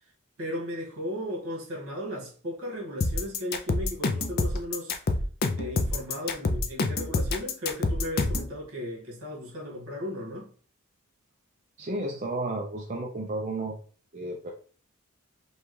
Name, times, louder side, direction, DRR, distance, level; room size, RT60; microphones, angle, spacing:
voice 1, 0.4-4.9 5.6-10.5, left 1 dB, 70° right, 1.9 m, -36 dB
sound 1, 3.0-8.5, left 3 dB, 45° left, 0.5 m, -27 dB
voice 2, 11.8-13.7 14.1-14.5, right 2 dB, 35° right, 0.5 m, -32 dB
5.3 x 2.4 x 3.2 m
head